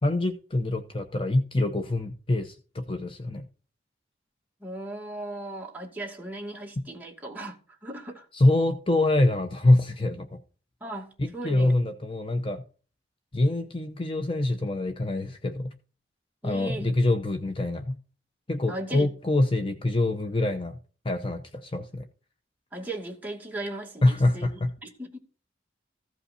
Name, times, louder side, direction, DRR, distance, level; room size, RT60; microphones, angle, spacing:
voice 1, 0.0-3.4 6.8-6.9 8.3-10.4 11.2-12.6 13.3-15.7 16.4-18.0 18.5-20.8 21.0-22.1 24.0-24.7, left 2 dB, 30° left, 0.8 m, -25 dB
voice 2, 4.6-7.6 7.8-8.3 10.8-11.9 16.4-16.9 18.7-19.1 22.7-24.5 24.8-25.2, right 1 dB, 10° right, 2.4 m, -37 dB
15.5 x 5.6 x 4.2 m
head